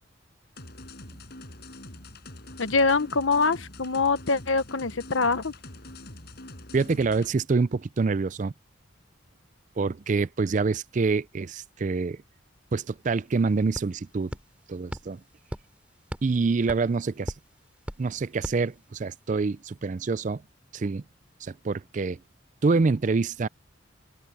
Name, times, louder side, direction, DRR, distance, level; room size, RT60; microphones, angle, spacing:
sound 1, 0.6-7.3, left 1 dB, 55° left, 7.1 m, -44 dB
voice 1, 2.6-5.5, left 4 dB, 75° left, 1.2 m, -24 dB
voice 2, 6.7-8.5 9.8-12.2 12.7-14.4 14.7-15.2 16.2-17.3 18.0-20.4 20.7-21.0 21.4-22.2 22.6-23.5, right 4 dB, 40° right, 0.4 m, -26 dB
sound 2, 12.6-12.7 13.0-19.4, equal, 5° right, 3.5 m, -41 dB
open air
head